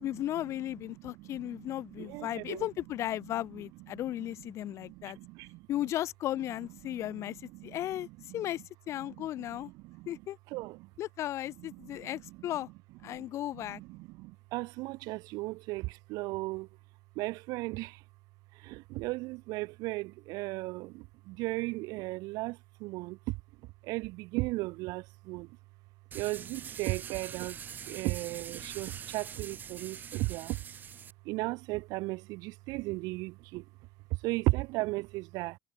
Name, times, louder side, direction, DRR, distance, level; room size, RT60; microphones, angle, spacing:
voice 1, 0.0-5.2 5.7-8.1 8.3-9.7 10.1-10.4 11.0-12.7 13.0-13.8, left 13 dB, 45° left, 4.2 m, -35 dB
voice 2, 0.9-2.7 4.2-4.3 4.6-5.7 6.9-7.8 8.1-8.5 9.0-10.2 10.5-10.9 11.6-12.5 13.1-13.3 13.5-16.7 17.2-18.0 18.5-23.4 23.8-25.6 26.1-27.6 27.9-30.6 31.2-33.7 34.1-35.6, right 22 dB, 65° right, 5.7 m, -36 dB
sound 1, 26.1-31.1, right 7 dB, 25° right, 7.0 m, -44 dB
cardioid pair, 165°, 7 cm